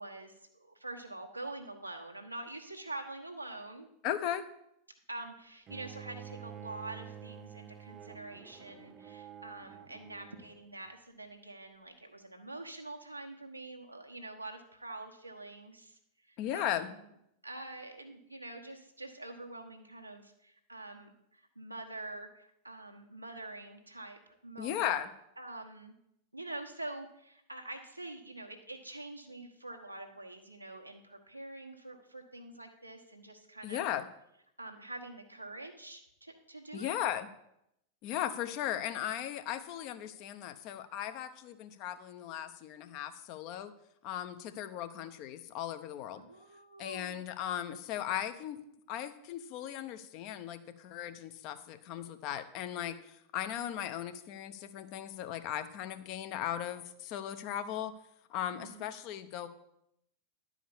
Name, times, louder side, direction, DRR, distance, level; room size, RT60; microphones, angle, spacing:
voice 1, 0.0-3.9 5.1-16.0 16.2-17.0 17.4-24.9 25.4-25.9 26.3-33.8 34.6-37.0 46.2-47.2 58.5-58.8, right 2 dB, 90° right, 1 dB, 1.2 m, -46 dB
voice 2, 4.0-4.5 16.4-16.9 24.6-25.1 33.6-34.1 36.7-37.3 38.0-43.7 44.0-46.2 46.8-48.6 48.9-57.9 58.3-59.5, left 11 dB, 40° left, 10 dB, 0.8 m, -37 dB
Bowed string instrument, 5.7-10.7, right 9 dB, 30° right, 0.5 m, -49 dB
11.0 x 5.0 x 7.0 m, 0.79 s
figure-of-eight pair, 90°, 0 cm